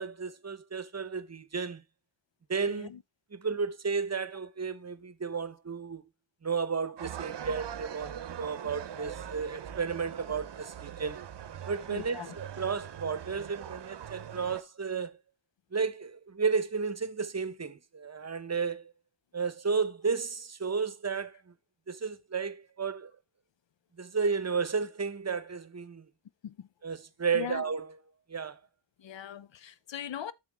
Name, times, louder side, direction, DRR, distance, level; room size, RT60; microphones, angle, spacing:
voice 1, 0.0-1.8 2.5-2.9 3.3-6.1 6.4-11.2 11.7-15.2 15.7-18.9 19.3-21.5 21.9-23.1 24.0-26.1 26.8-27.9 28.3-28.6, right 5 dB, 35° right, 0.8 m, -33 dB
voice 2, 2.7-3.0 11.9-12.4 26.4-26.7 27.3-27.6 29.0-30.3, left 9 dB, 80° left, 0.6 m, -40 dB
sound 1, 7.0-14.6, right 9 dB, 65° right, 0.7 m, -42 dB
7.1 x 7.0 x 3.4 m
cardioid pair, 60°, 44 cm